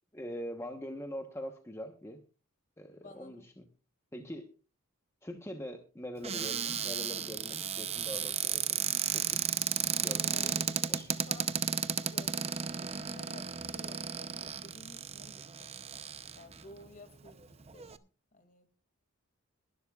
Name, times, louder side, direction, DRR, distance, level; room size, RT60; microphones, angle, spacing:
voice 1, 0.1-2.2 2.8-3.7 4.1-4.5 5.2-9.4 10.0-11.1, equal, 15° left, 4 dB, 1.1 m, -43 dB
voice 2, 3.0-3.5 10.3-11.6 12.0-15.7 16.3-18.7, left 2 dB, 40° left, 8 dB, 2.3 m, -54 dB
Cupboard open or close, 6.2-16.6 17.3-17.4 17.6-18.0, right 8 dB, 30° right, 0.7 m, -34 dB
21.5 x 12.0 x 2.4 m, 0.33 s
head